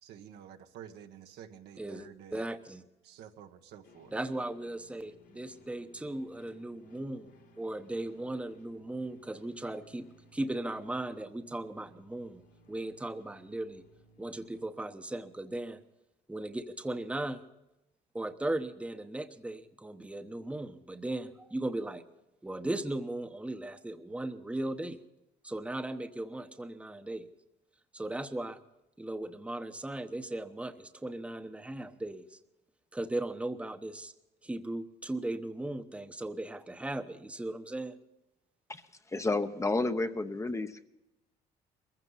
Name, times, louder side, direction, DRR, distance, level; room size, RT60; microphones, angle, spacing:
voice 1, 0.0-2.4 3.0-4.1, right 9 dB, 80° right, 5 dB, 1.5 m, -50 dB
voice 2, 1.8-2.8 4.1-7.3 7.6-10.1 10.3-12.4 12.7-13.8 14.2-15.8 16.3-17.4 18.1-22.0 22.4-25.0 25.4-27.3 27.9-28.6 29.0-32.4 32.9-34.1 34.4-38.0, right 1 dB, 5° right, 8 dB, 1.0 m, -37 dB
sound 1, 3.8-14.6, left 1 dB, 85° left, 5.2 m, -61 dB
voice 3, 39.1-40.8, left 2 dB, 15° left, 9 dB, 0.9 m, -31 dB
22.0 x 15.5 x 4.1 m, 0.93 s
cardioid pair, 110°, 17 cm